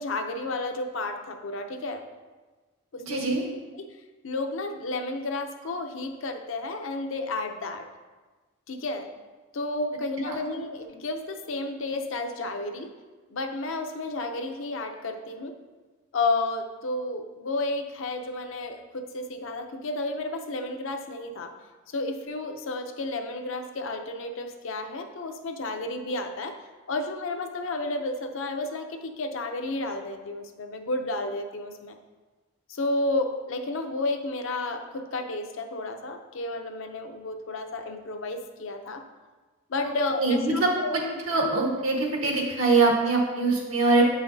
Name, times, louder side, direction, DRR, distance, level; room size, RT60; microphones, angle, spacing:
voice 1, 0.0-2.0 2.9-3.4 3.8-3.9 4.2-7.9 8.7-9.1 9.5-12.9 13.3-15.5 16.1-21.5 21.9-26.5 26.9-32.0 32.7-39.0 39.7-40.9, left 2 dB, 60° left, 5 dB, 0.6 m, -31 dB
voice 2, 3.0-3.4 10.2-10.4 40.2-41.0 41.3-44.1, right 3 dB, 70° right, -1 dB, 1.3 m, -23 dB
8.0 x 5.7 x 2.7 m, 1.3 s
head